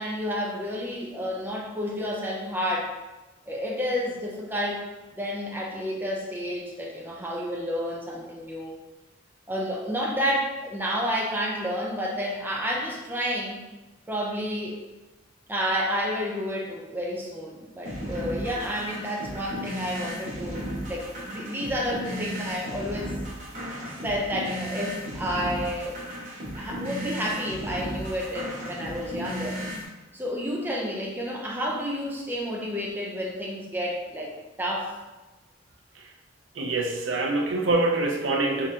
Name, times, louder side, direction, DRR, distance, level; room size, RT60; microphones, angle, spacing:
voice 1, 0.0-2.9 3.5-8.8 9.5-13.6 14.1-14.8 15.5-23.1 24.0-26.0 26.5-29.6 30.1-34.3 34.6-34.9, equal, 10° right, -2 dB, 0.6 m, -30 dB
sound 1, 17.8-29.8, equal, 45° right, 1.0 m, -35 dB
voice 2, 36.5-38.7, right 2 dB, 80° right, 2 dB, 0.6 m, -25 dB
3.6 x 3.6 x 2.8 m, 1.1 s
head